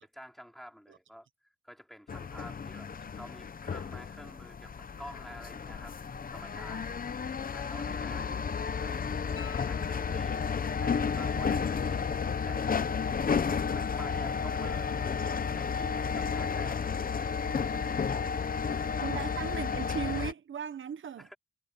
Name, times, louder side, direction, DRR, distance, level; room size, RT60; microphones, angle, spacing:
voice 1, 0.0-1.3 1.6-5.9 6.3-7.0 7.5-8.4 8.8-9.0 9.7-10.5 10.8-12.1 13.7-18.0 21.2-21.4, equal, ahead, 4.6 m, -50 dB
sound 1, 2.1-20.3, left 6 dB, 45° left, 0.8 m, -32 dB
sound 2, 9.4-10.7 13.5-13.6, left 8 dB, 85° left, 1.3 m, -51 dB
voice 2, 19.0-21.3, right 8 dB, 75° right, 0.8 m, -37 dB
wide cardioid pair, 125°, 21 cm